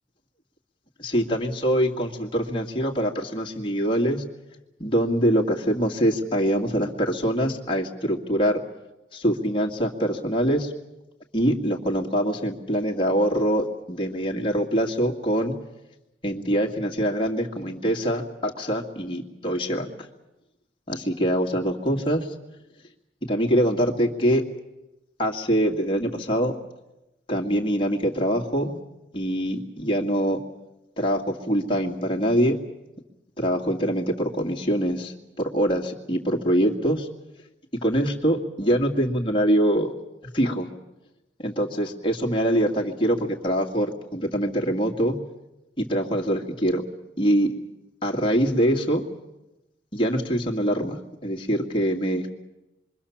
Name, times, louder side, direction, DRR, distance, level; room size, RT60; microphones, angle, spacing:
voice 1, 1.0-4.2 4.8-8.6 9.1-10.7 11.3-15.5 16.2-19.9 20.9-22.3 23.2-24.5 25.2-26.5 27.3-28.8 29.1-30.4 31.0-32.6 33.4-37.1 37.7-39.9 40.3-40.7 41.4-45.2 45.8-46.8 47.2-47.5 48.0-49.0 49.9-52.3, equal, 30° left, 0 dB, 2.2 m, -24 dB
26.5 x 23.5 x 7.3 m, 0.96 s
head